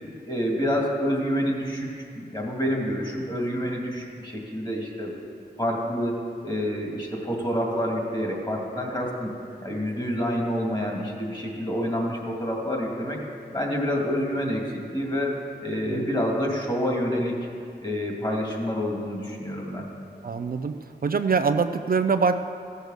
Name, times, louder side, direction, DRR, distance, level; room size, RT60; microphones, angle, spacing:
voice 1, 0.2-5.1 5.6-9.3 9.6-13.2 13.5-17.5 17.8-19.9, equal, 25° left, -1 dB, 2.3 m, -28 dB
voice 2, 20.2-20.8 21.0-22.4, right 5 dB, 55° right, 8 dB, 0.5 m, -24 dB
15.0 x 6.6 x 6.4 m, 2.4 s
wide cardioid pair, 80°, 18 cm